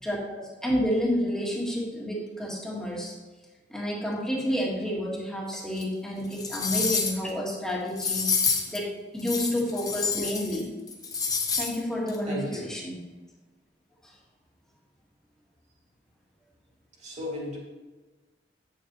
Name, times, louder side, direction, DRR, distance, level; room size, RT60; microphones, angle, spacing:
voice 1, 0.0-3.1 3.7-8.3 8.7-10.7 11.6-13.0 14.0-14.1, equal, 5° left, -4 dB, 1.5 m, -30 dB
sound 1, 5.8-5.9 6.3-7.3 8.0-8.8 9.2-10.6 10.9-11.8 12.1-12.2, left 5 dB, 20° left, 0.8 m, -28 dB
voice 2, 12.2-12.7 17.0-17.6, left 1 dB, 40° right, -3 dB, 2.2 m, -34 dB
8.6 x 7.0 x 3.0 m, 1.2 s
head